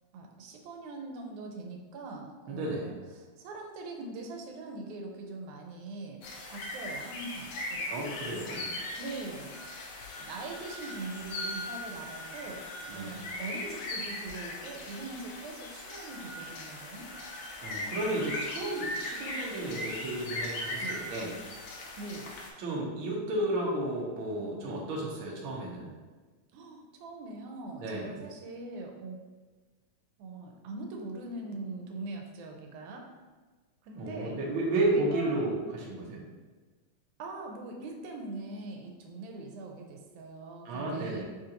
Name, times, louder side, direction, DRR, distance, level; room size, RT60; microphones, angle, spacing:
voice 1, 0.1-6.2 6.5-9.6 10.2-12.6 12.9-17.1 20.8-21.1 22.0-22.3 26.5-29.2 30.2-33.1 33.8-34.4 34.8-35.5 37.2-41.2, right 3 dB, 85° right, 2 dB, 2.0 m, -42 dB
voice 2, 2.5-2.9 7.9-8.6 12.9-13.2 17.6-21.3 22.6-25.8 27.8-28.1 33.9-36.2 40.6-41.2, right 1 dB, 70° right, -3 dB, 1.2 m, -32 dB
sound 1, 6.2-22.5, left 1 dB, 75° left, 1.6 m, -39 dB
6.6 x 2.5 x 2.8 m, 1.3 s
omnidirectional pair, 3.4 m